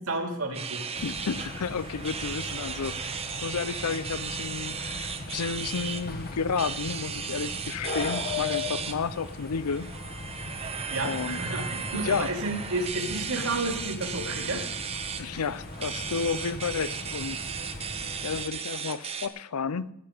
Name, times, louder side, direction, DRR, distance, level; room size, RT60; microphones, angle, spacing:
voice 1, 0.1-0.9 10.9-14.6, right 2 dB, 70° right, 3 dB, 2.5 m, -31 dB
sound 1, 0.5-19.3, right 6 dB, 25° right, 0.8 m, -36 dB
sound 2, 0.9-18.5, left 3 dB, 45° left, 1.2 m, -39 dB
voice 2, 1.0-9.9 11.0-11.4 11.9-12.3 15.2-17.4 18.2-19.9, left 5 dB, 85° left, 17 dB, 0.6 m, -32 dB
19.5 x 7.8 x 5.1 m, 0.76 s
head